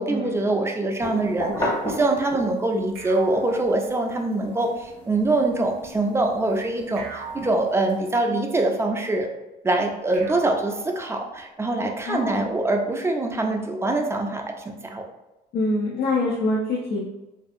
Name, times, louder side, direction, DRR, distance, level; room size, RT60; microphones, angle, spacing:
voice 1, 0.0-9.3 9.6-15.0, right 2 dB, 15° right, 2 dB, 0.3 m, -24 dB
sound 1, 1.0-2.8 3.3-7.9, left 1 dB, 30° left, 0.9 m, -33 dB
sound 2, 2.9-4.6 7.0-8.5 10.1-11.6, right 3 dB, 90° right, 0.5 m, -41 dB
voice 2, 12.1-12.5 15.5-17.0, left 2 dB, 65° left, -4 dB, 0.5 m, -25 dB
2.6 x 2.4 x 2.4 m, 0.97 s
cardioid pair, 110°, 17 cm